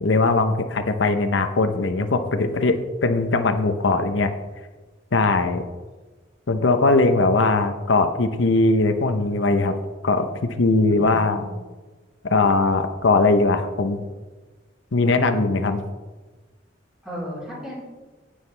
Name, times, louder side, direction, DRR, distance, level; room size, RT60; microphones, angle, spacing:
voice 1, 0.0-4.3 5.1-5.6 6.5-9.8 10.0-11.5 12.2-14.0 14.9-15.8, left 3 dB, 85° left, 8 dB, 0.8 m, -20 dB
voice 2, 10.9-11.6 17.0-17.8, equal, 5° right, -7 dB, 3.8 m, -35 dB
16.5 x 6.4 x 3.3 m, 1.2 s
head